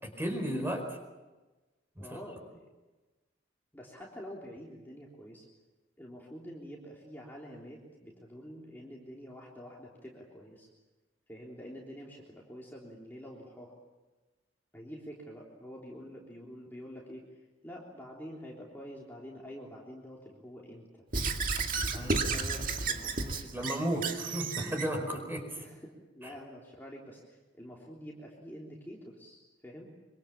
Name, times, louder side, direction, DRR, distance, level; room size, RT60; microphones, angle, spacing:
voice 1, 0.0-1.0 2.0-2.2 21.9-22.2 23.5-25.6 26.2-26.3, right 1 dB, 10° right, 3 dB, 4.8 m, -34 dB
voice 2, 2.0-2.7 3.7-5.5 6.0-10.7 11.3-13.7 14.7-21.0 21.8-24.0 25.6-29.9, equal, 10° left, -3 dB, 3.5 m, -47 dB
Squeak / Writing, 21.1-24.9, right 4 dB, 45° right, 2.1 m, -32 dB
25.5 x 25.0 x 7.4 m, 1.2 s
head